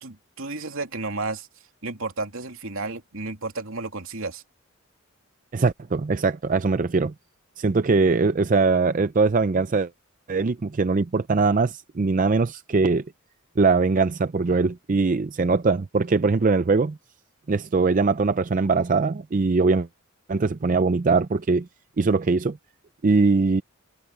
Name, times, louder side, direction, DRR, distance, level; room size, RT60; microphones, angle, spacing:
voice 1, 0.0-1.5 1.8-4.4, right 3 dB, 75° right, 2.9 m, -32 dB
voice 2, 5.5-7.1 7.6-9.9 10.3-13.0 13.6-17.0 17.5-19.9 20.3-21.7 22.0-22.6 23.0-23.6, right 4 dB, 40° right, 0.4 m, -21 dB
head